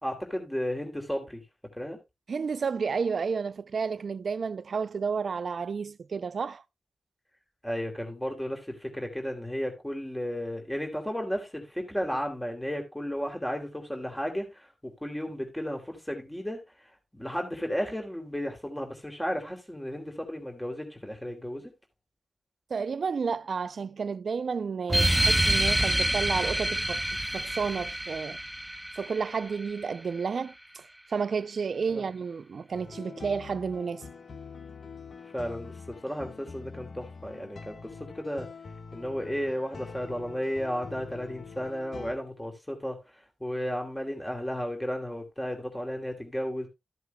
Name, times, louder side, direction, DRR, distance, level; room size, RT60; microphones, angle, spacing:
voice 1, 0.0-1.4 1.7-2.0 7.6-21.7 31.9-32.1 35.2-38.5 38.9-46.7, equal, 10° left, 2.8 m, -34 dB
voice 2, 2.3-6.6 22.7-27.0 27.3-28.4 28.9-30.8 31.1-34.0, right 5 dB, 75° right, 0.4 m, -31 dB
sound 1, 24.9-29.9, right 1 dB, 10° right, 0.4 m, -27 dB
sound 2, 32.7-42.2, left 4 dB, 70° left, 1.1 m, -44 dB
13.5 x 8.0 x 2.3 m
cardioid pair, 50°, 0 cm